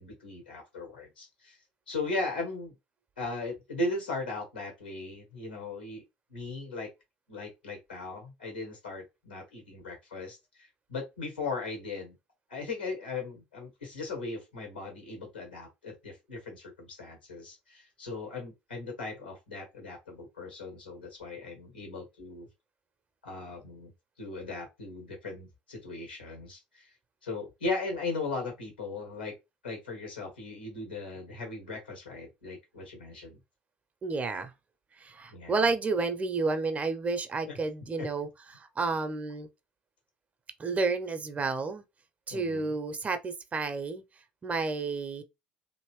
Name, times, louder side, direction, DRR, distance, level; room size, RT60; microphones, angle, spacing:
voice 1, 0.0-1.6 1.9-2.8 3.2-6.0 6.3-6.9 7.3-12.1 12.5-22.5 23.2-23.9 24.2-26.9 27.2-29.3 29.6-33.4 35.3-35.7 38.0-38.1 42.3-42.7, left 3 dB, 85° left, 1.4 m, -38 dB
voice 2, 34.0-34.5 35.0-39.5 40.6-41.8 42.3-44.0 44.4-45.2, right 3 dB, 30° right, 0.6 m, -31 dB
2.9 x 2.7 x 3.1 m
figure-of-eight pair, 60°, 5 cm